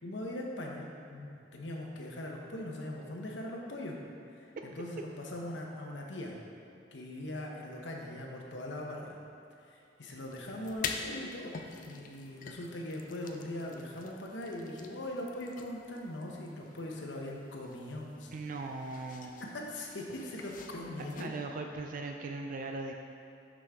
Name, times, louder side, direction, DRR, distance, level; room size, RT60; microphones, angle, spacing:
voice 1, 0.0-4.0 4.3-6.4 6.9-9.2 9.7-18.3 19.5-21.3, left 1 dB, 80° left, 0 dB, 0.9 m, -41 dB
sound 1, 10.1-21.3, left 5 dB, 45° left, 0.4 m, -46 dB
voice 2, 18.3-19.4 21.2-22.9, right 3 dB, 50° right, 3 dB, 0.3 m, -39 dB
6.3 x 6.1 x 3.5 m, 2.7 s
head